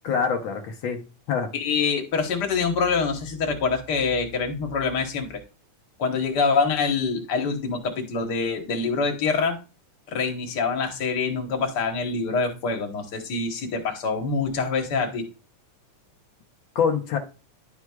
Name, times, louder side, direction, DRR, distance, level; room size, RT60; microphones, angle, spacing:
voice 1, 0.0-1.0 1.3-1.5 16.7-17.2, left 6 dB, 90° left, 3 dB, 1.0 m, -25 dB
voice 2, 1.5-5.4 6.0-9.6 10.1-15.3, left 4 dB, 50° left, 4 dB, 1.2 m, -25 dB
11.0 x 6.1 x 2.4 m, 0.32 s
omnidirectional pair, 3.6 m